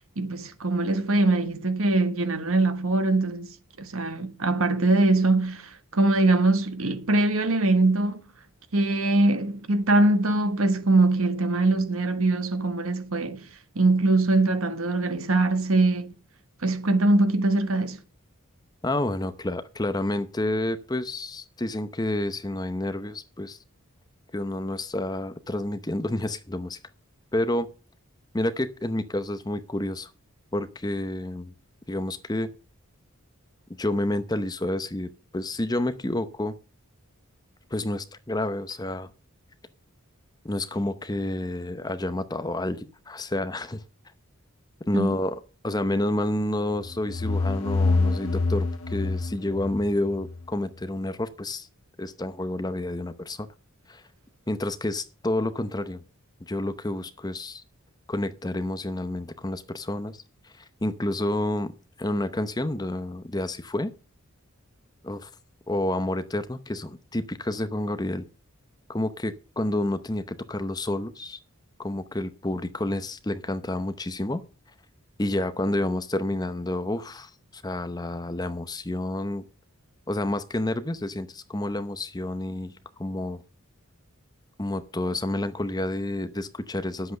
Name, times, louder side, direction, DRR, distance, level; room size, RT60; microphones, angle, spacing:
voice 1, 0.2-3.5 3.8-8.2 8.7-13.4 13.7-16.1 16.6-18.0 44.9-45.1, right 2 dB, 75° right, 1.4 m, -22 dB
voice 2, 18.8-23.6 24.3-26.8 27.3-27.7 28.3-30.1 30.5-31.5 31.9-32.5 33.8-36.5 37.7-39.1 40.4-43.8 44.9-51.7 52.0-53.5 53.9-54.0 54.5-56.0 56.4-57.6 58.1-63.9 65.0-65.3 65.7-68.3 68.9-71.4 71.8-74.4 75.2-79.4 80.1-83.4 84.6-87.2, left 1 dB, 20° left, 0.7 m, -29 dB
sound 1, 46.8-50.4, left 3 dB, 90° left, 1.3 m, -26 dB
10.0 x 8.0 x 6.4 m
head